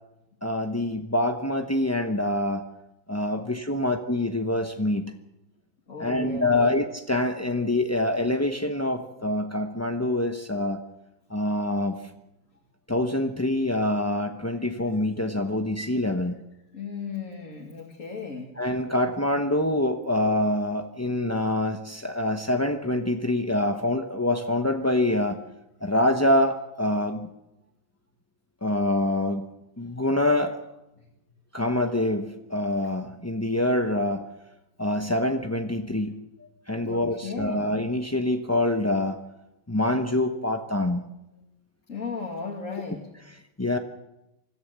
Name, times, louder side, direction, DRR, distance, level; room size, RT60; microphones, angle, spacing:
voice 1, 0.4-2.6 3.1-5.0 6.0-10.8 11.3-12.0 12.9-16.4 18.6-25.4 25.8-27.3 28.6-29.4 29.8-30.6 31.5-34.3 34.8-36.2 36.7-39.2 39.7-41.1 43.6-43.8, left 1 dB, 20° left, 5 dB, 0.4 m, -25 dB
voice 2, 5.9-6.7 16.7-18.5 36.8-37.7 41.9-43.1, left 4 dB, 40° left, 0 dB, 2.6 m, -35 dB
25.0 x 14.0 x 8.1 m, 0.94 s
omnidirectional pair, 2.1 m